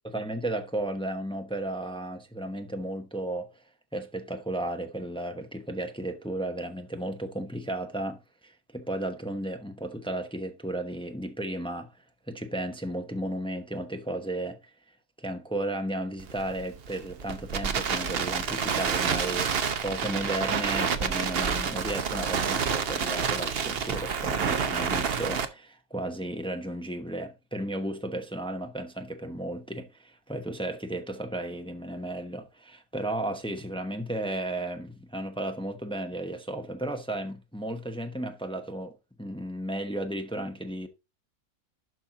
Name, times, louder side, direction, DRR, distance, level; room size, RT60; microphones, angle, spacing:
voice 1, 0.1-3.6 3.9-11.9 12.3-14.6 15.2-19.5 19.8-40.9, right 1 dB, 5° left, 0.5 m, -34 dB
Crackle, 16.2-25.4, right 6 dB, 50° right, 0.8 m, -29 dB
11.5 x 4.4 x 3.8 m
omnidirectional pair, 1.8 m